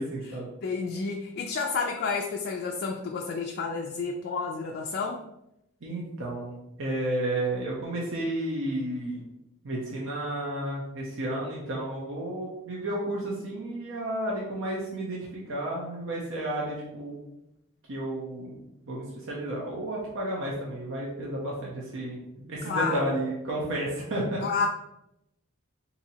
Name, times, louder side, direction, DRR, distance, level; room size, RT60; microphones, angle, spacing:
voice 1, 0.0-0.5 5.8-9.2 9.6-17.2 17.9-18.6 18.8-24.4, right 1 dB, 65° right, -4 dB, 0.7 m, -32 dB
voice 2, 0.6-5.2 22.6-23.0 24.4-24.7, left 5 dB, 50° left, 1 dB, 0.3 m, -30 dB
4.1 x 2.7 x 2.7 m, 0.85 s
head